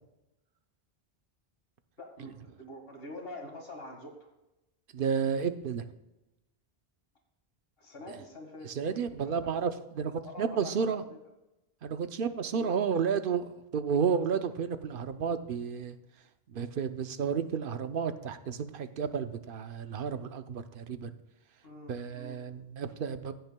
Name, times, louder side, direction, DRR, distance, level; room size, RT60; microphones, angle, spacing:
voice 1, 2.0-4.3 7.8-9.5 10.2-11.2 12.5-12.8 21.6-22.5, left 1 dB, 70° left, 2 dB, 1.8 m, -46 dB
voice 2, 4.9-5.9 8.6-11.0 11.8-16.0 16.5-21.1 21.9-23.3, right 6 dB, 65° right, 10 dB, 0.8 m, -32 dB
16.0 x 9.2 x 2.2 m, 0.96 s
omnidirectional pair, 1.0 m